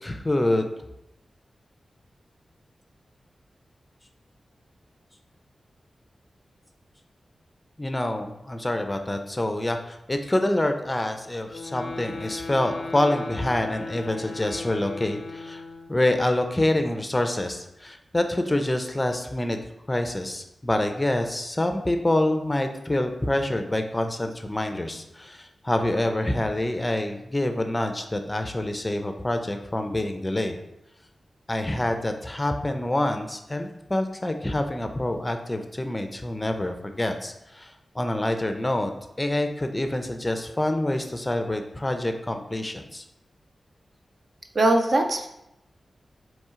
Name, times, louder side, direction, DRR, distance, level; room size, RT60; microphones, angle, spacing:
voice 1, 0.0-0.7 7.8-15.6 15.9-19.6 19.9-30.6 31.5-38.9 39.2-43.0, left 1 dB, 20° left, 6 dB, 0.4 m, -26 dB
sound 1, 11.5-16.0, left 3 dB, 75° left, 0.4 m, -37 dB
voice 2, 44.5-45.3, right 2 dB, 55° right, 4 dB, 0.5 m, -21 dB
4.3 x 3.0 x 3.6 m, 0.85 s
wide cardioid pair, 85°, 0 cm